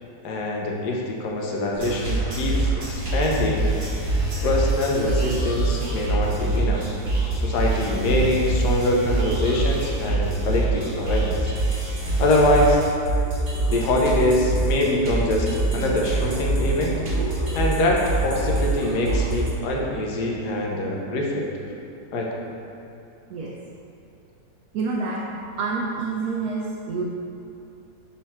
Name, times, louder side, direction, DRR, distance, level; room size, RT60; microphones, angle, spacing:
voice 1, 0.2-3.7 4.4-6.9 7.3-11.5 12.2-12.8 13.7-15.5 15.7-16.9 17.5-21.7 22.1-22.3, left 1 dB, 75° left, -1 dB, 1.3 m, -24 dB
sound 1, 1.7-19.5, right 2 dB, 35° right, 0.9 m, -25 dB
voice 2, 24.7-27.0, right 4 dB, 70° right, -2 dB, 1.0 m, -28 dB
5.8 x 4.3 x 4.3 m, 2.8 s
omnidirectional pair, 1.8 m